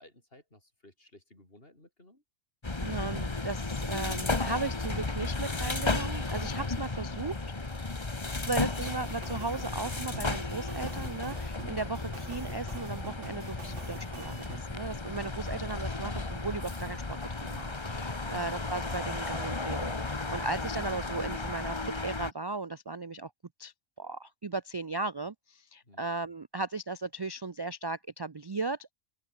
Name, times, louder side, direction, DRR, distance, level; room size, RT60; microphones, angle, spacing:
voice 1, 0.0-2.2 18.2-18.5 25.8-26.0, left 1 dB, 50° left, 6.8 m, -57 dB
sound 1, 2.6-22.3, left 3 dB, 25° left, 1.3 m, -34 dB
voice 2, 2.8-7.4 8.5-17.0 17.4-23.3 23.6-28.9, right 3 dB, 35° right, 0.4 m, -36 dB
sound 2, 8.9-14.6, right 5 dB, 70° right, 2.0 m, -48 dB
omnidirectional pair, 1.2 m